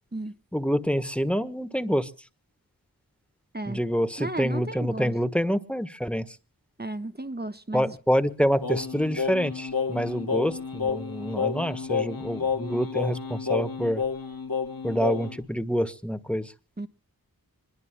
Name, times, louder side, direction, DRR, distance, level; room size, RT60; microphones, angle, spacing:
voice 1, 0.5-2.1 3.7-6.4 7.7-14.0 14.8-16.5, equal, 5° left, 1.2 m, -27 dB
voice 2, 4.2-5.1 6.8-7.9 16.8-16.9, right 2 dB, 25° right, 1.1 m, -34 dB
Singing, 8.6-15.4, left 5 dB, 65° left, 1.7 m, -30 dB
26.0 x 21.5 x 2.2 m
wide cardioid pair, 60°, 39 cm